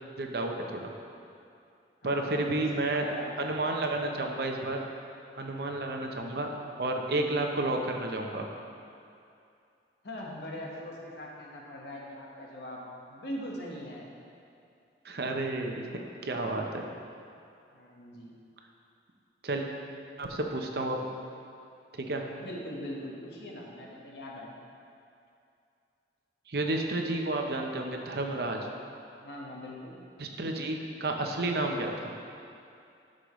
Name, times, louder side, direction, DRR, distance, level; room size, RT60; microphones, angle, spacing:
voice 1, 0.2-0.9 2.0-3.1 3.4-4.8 5.3-6.5 6.8-8.5 15.0-16.8 19.4-19.7 20.2-21.0 21.9-22.2 26.5-28.7 30.2-32.1, right 2 dB, 60° right, 2 dB, 0.7 m, -31 dB
voice 2, 2.0-3.5 7.1-7.5 10.0-14.0 17.7-18.4 22.3-24.7 29.2-30.0, left 1 dB, 65° left, -2 dB, 1.3 m, -41 dB
11.5 x 6.5 x 3.1 m, 2.5 s
head